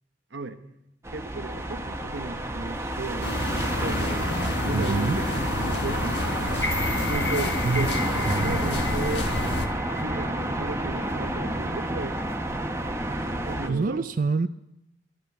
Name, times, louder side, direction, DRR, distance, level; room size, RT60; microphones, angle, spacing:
sound 1, 1.0-13.7, right 1 dB, 15° right, 1.2 m, -30 dB
voice 1, 1.1-6.2 7.1-8.1 8.4-9.3 10.0-12.2 13.5-14.1, right 3 dB, 85° right, 9 dB, 1.2 m, -35 dB
sound 2, 3.2-9.7, left 2 dB, 70° left, 1.6 m, -29 dB
voice 2, 4.7-5.2 7.6-7.9 8.3-8.8 13.7-14.5, right 4 dB, 50° right, 10 dB, 0.4 m, -26 dB
sound 3, 6.5-10.7 11.1-11.2, left 2 dB, 15° left, 1.7 m, -34 dB
12.5 x 11.0 x 8.5 m, 0.87 s
head